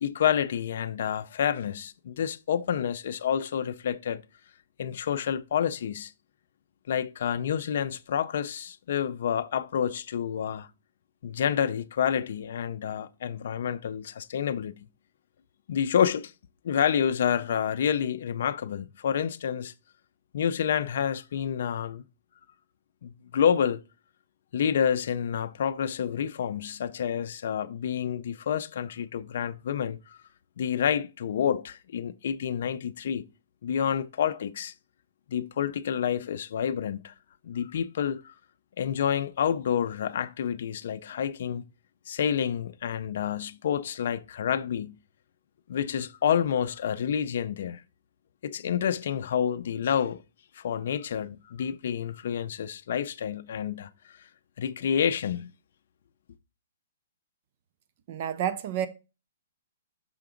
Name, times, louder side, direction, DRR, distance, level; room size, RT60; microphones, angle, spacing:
voice 1, 0.0-4.2 4.8-6.1 6.9-10.7 11.2-14.9 15.7-16.3 16.6-19.7 20.3-22.0 23.0-23.8 24.5-30.2 30.6-33.2 33.6-34.7 35.3-37.1 37.4-38.3 38.8-41.7 42.1-44.9 45.7-47.8 48.4-50.2 50.6-54.1 54.6-55.5, left 8 dB, 55° left, 0.4 m, -28 dB
voice 2, 58.1-58.9, right 10 dB, 35° right, 0.4 m, -29 dB
5.8 x 4.7 x 3.7 m
hypercardioid pair, 170°, 0 cm